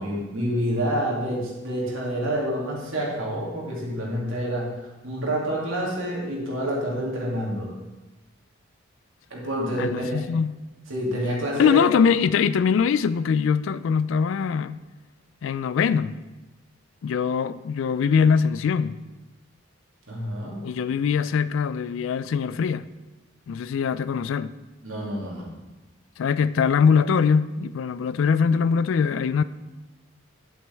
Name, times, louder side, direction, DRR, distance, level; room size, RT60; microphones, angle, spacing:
voice 1, 0.0-4.7 5.0-7.7 9.3-10.2 10.9-11.9 20.1-20.6 24.8-25.5, equal, 75° right, 2.6 m, -28 dB
voice 2, 9.8-10.6 11.6-14.8 15.4-16.2 17.0-19.0 20.6-22.9 23.5-24.5 26.2-29.4, left 6 dB, 65° left, 0.3 m, -22 dB
9.4 x 8.1 x 3.5 m
head